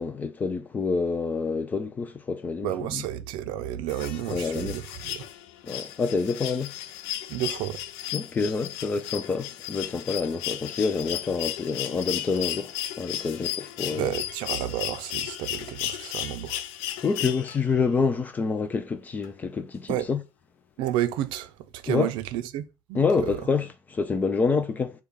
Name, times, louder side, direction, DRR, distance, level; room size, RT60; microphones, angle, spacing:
voice 1, 0.0-3.0 4.3-4.8 5.6-6.7 8.1-12.7 13.0-14.1 17.0-20.2 21.9-22.1 22.9-24.9, left 4 dB, 20° left, 0.3 m, -27 dB
voice 2, 2.6-5.3 7.3-7.8 13.9-16.6 19.9-20.1 20.8-23.5, right 12 dB, 70° right, 0.5 m, -31 dB
sound 1, 3.9-17.8 19.2-19.3, left 12 dB, 90° left, 0.4 m, -35 dB
6.2 x 2.3 x 3.5 m
cardioid pair, 160°, 9 cm